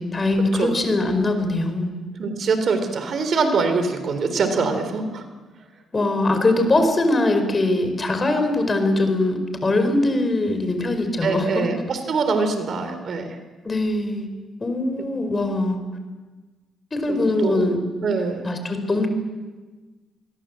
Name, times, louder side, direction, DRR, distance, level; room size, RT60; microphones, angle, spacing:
voice 1, 0.0-1.9 5.9-11.6 13.6-14.3 14.6-15.8 16.9-17.8 18.4-19.1, left 2 dB, 25° left, 7 dB, 4.9 m, -22 dB
voice 2, 2.2-5.2 11.2-13.4 17.1-17.7 18.0-18.5, right 4 dB, 55° right, 8 dB, 3.7 m, -24 dB
25.5 x 22.5 x 7.8 m, 1.3 s
cardioid pair, 90°, 0 cm